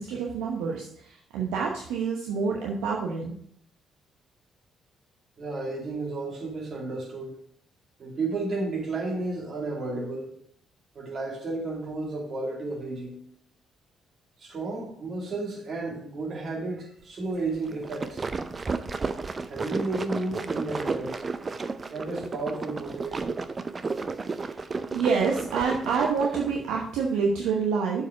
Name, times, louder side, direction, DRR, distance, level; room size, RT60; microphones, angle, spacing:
voice 1, 0.0-3.3 24.4-24.5 24.9-28.0, right 5 dB, 75° right, 0.9 m, -27 dB
voice 2, 5.4-7.3 8.0-10.3 10.9-13.2 14.4-18.3 19.5-21.2 21.9-23.4, right 2 dB, 55° right, 2.4 m, -32 dB
sound 1, 17.7-26.6, right 4 dB, 35° right, 0.6 m, -33 dB
7.0 x 4.9 x 5.9 m
hypercardioid pair, 45°, 0 cm